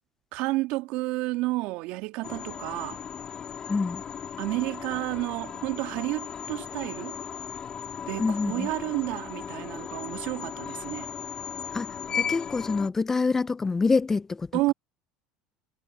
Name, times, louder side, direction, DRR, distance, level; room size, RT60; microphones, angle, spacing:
voice 1, 0.3-3.0 4.4-7.2 8.1-11.1 14.5-14.7, right 20 dB, 65° right, 2.1 m, -30 dB
sound 1, 2.2-12.9, left 8 dB, 40° left, 4.1 m, -36 dB
voice 2, 3.7-4.0 8.2-8.7 11.7-14.7, left 4 dB, 20° left, 0.6 m, -26 dB
hypercardioid pair, 85°, 2 cm